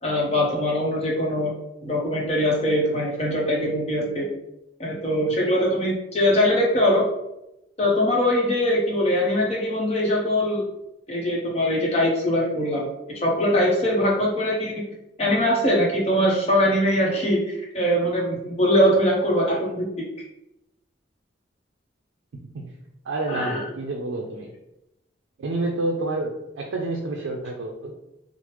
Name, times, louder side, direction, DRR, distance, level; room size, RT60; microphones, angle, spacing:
voice 1, 0.0-1.5 1.8-4.3 4.8-7.1 7.8-10.6 11.1-12.9 13.2-14.8 15.2-19.9 23.3-23.6, equal, 30° left, -3 dB, 0.7 m, -22 dB
voice 2, 23.0-24.5 25.4-27.9, right 2 dB, 75° right, 1 dB, 0.4 m, -29 dB
3.1 x 2.0 x 3.1 m, 0.89 s
head